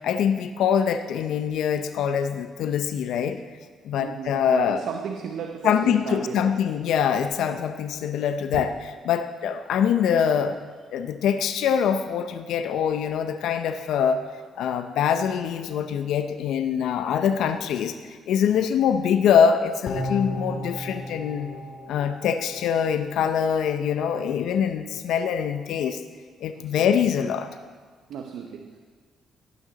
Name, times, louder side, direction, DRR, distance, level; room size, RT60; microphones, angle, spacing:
voice 1, 0.0-3.4 3.8-4.8 5.6-8.7 9.1-10.6 10.9-14.2 14.6-21.5 21.9-26.0 26.4-27.5, left 8 dB, 80° left, 9 dB, 0.6 m, -24 dB
voice 2, 4.0-6.7 8.5-8.6 26.5-26.9 28.1-28.8, right 7 dB, 80° right, 5 dB, 0.7 m, -35 dB
sound 1, 19.9-23.2 23.6-23.7, left 1 dB, 60° left, 1.8 m, -34 dB
18.0 x 9.1 x 4.0 m, 1.5 s
cardioid pair, 90°, 0 cm